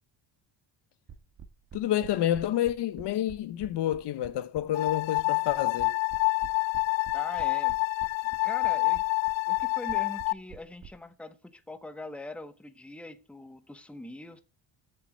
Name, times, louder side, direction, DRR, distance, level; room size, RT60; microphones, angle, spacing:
sound 1, 1.1-10.9, right 7 dB, 40° right, 1.5 m, -47 dB
voice 1, 1.7-5.9, left 12 dB, 65° left, 0.9 m, -29 dB
sound 2, 4.7-10.3, left 27 dB, 90° left, 0.5 m, -27 dB
voice 2, 7.1-7.8 8.4-9.0 9.5-14.4, left 2 dB, 5° left, 1.0 m, -42 dB
8.2 x 6.7 x 7.6 m
cardioid pair, 120°, 44 cm